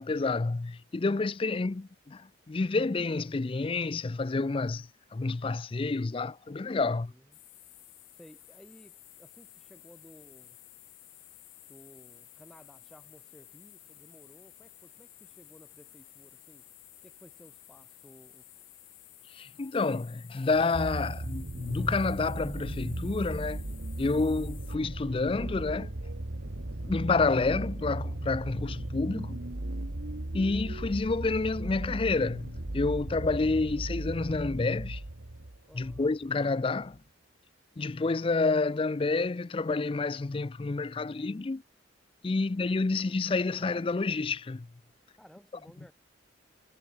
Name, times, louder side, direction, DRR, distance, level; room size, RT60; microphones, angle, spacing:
voice 1, 0.0-7.1 19.3-23.6 24.0-25.9 26.9-29.4 30.3-35.0 35.7-37.0 37.8-41.6 42.2-44.7, left 3 dB, 30° left, 0.4 m, -29 dB
voice 2, 6.8-7.4 8.2-10.6 11.7-16.7 17.0-18.5 35.7-36.1 42.3-42.7 45.2-45.9, equal, ahead, 4.6 m, -56 dB
sound 1, 7.3-24.8, left 16 dB, 55° left, 4.9 m, -54 dB
sound 2, 20.5-36.1 36.9-37.0, right 1 dB, 75° right, 1.7 m, -37 dB
head